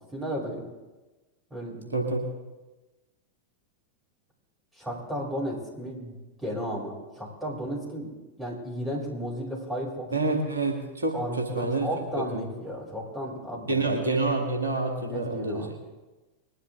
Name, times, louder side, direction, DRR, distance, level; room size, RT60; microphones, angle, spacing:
voice 1, 0.1-0.6 1.5-1.9 4.7-8.1 8.4-10.1 11.1-13.8 15.1-15.7, equal, 10° right, -5 dB, 6.2 m, -34 dB
voice 2, 1.9-2.2 10.1-11.9 12.3-12.4 13.7-15.7, right 2 dB, 75° right, 2 dB, 1.7 m, -27 dB
21.0 x 11.5 x 3.7 m, 1.1 s
figure-of-eight pair, 90°, 0 cm